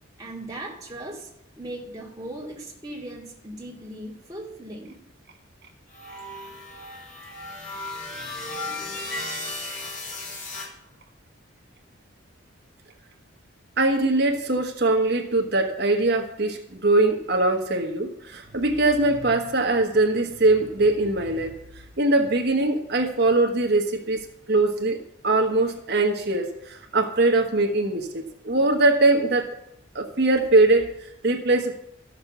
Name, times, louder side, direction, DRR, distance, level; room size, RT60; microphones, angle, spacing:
voice 1, 0.2-1.3 1.6-5.0, right 1 dB, 20° right, -3 dB, 2.5 m, -38 dB
sound 1, 5.9-10.7, left 2 dB, 45° left, 3.9 m, -35 dB
voice 2, 13.8-21.5 22.0-25.0 25.2-29.5 29.9-31.7, right 2 dB, 50° right, 3 dB, 1.3 m, -22 dB
13.0 x 6.7 x 6.9 m, 0.78 s
head